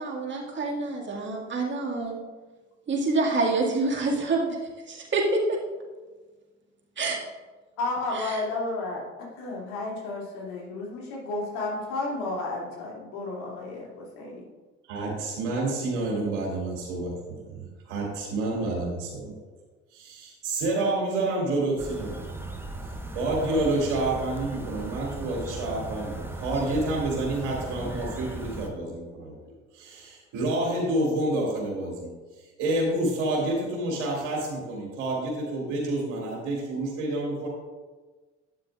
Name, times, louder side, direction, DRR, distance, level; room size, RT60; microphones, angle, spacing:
voice 1, 0.0-2.2 2.9-4.6 4.9-5.6 7.0-7.2 8.1-8.4, right 3 dB, 30° right, -1 dB, 2.0 m, -27 dB
voice 2, 7.8-9.0 9.3-14.4, left 2 dB, 60° left, -3 dB, 2.6 m, -32 dB
voice 3, 14.9-17.1 17.4-19.3 19.9-22.2 23.1-29.3 29.7-32.1 32.6-37.5, right 2 dB, 60° right, -2 dB, 2.5 m, -28 dB
sound 1, 21.8-28.7, right 2 dB, 5° right, 1.1 m, -37 dB
11.5 x 9.1 x 2.4 m, 1.3 s
figure-of-eight pair, 55°, 35 cm